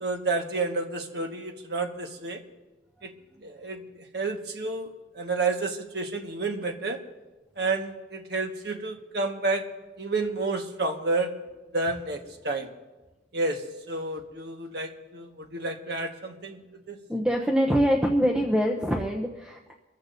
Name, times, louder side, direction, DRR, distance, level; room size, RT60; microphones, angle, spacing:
voice 1, 0.0-2.4 3.0-3.1 3.4-3.8 4.1-7.0 7.6-9.6 10.0-11.3 11.7-12.7 13.3-17.0, right 3 dB, 60° right, 3 dB, 1.4 m, -30 dB
voice 2, 17.1-19.7, equal, 5° right, -1 dB, 0.7 m, -24 dB
24.5 x 14.5 x 2.6 m, 1.1 s
head